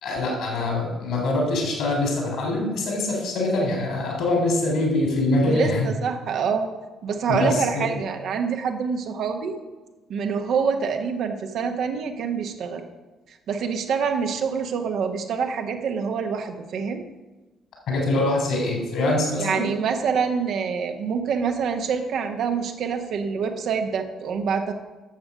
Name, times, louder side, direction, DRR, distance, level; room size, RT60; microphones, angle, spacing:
voice 1, 0.0-5.9 7.3-7.9 17.9-19.6, left 2 dB, 60° left, 0 dB, 3.5 m, -24 dB
voice 2, 5.5-6.7 7.0-9.6 10.1-12.8 13.5-17.0 19.4-24.7, right 6 dB, 55° right, 5 dB, 1.0 m, -26 dB
11.5 x 7.4 x 5.0 m, 1.2 s
figure-of-eight pair, 45°, 0 cm